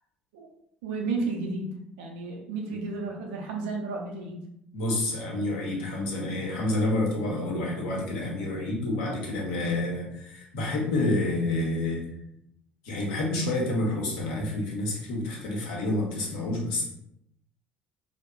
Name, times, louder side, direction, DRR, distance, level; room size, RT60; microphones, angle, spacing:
voice 1, 0.8-4.4, right 3 dB, 65° right, 1 dB, 0.5 m, -32 dB
voice 2, 4.7-12.0 12.8-16.8, left 2 dB, 65° left, -2 dB, 0.7 m, -28 dB
2.7 x 2.0 x 2.3 m, 0.76 s
figure-of-eight pair, 55°, 5 cm